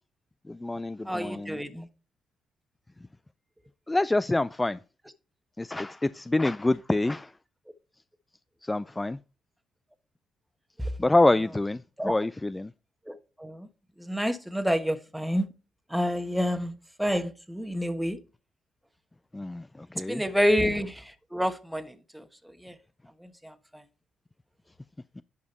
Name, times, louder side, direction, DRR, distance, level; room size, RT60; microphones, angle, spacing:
voice 1, 0.5-1.6 3.9-4.8 5.6-7.3 8.6-9.2 11.0-12.7 19.3-20.2, left 2 dB, 15° left, 0.3 m, -26 dB
voice 2, 1.0-1.9 10.8-10.9 12.0-12.1 13.1-13.7 14.0-15.5 15.9-16.7 17.0-18.2 20.1-22.2 22.6-22.7 23.2-23.8, equal, 5° right, 1.1 m, -28 dB
11.0 x 5.1 x 4.2 m
cardioid pair, 90°, 0 cm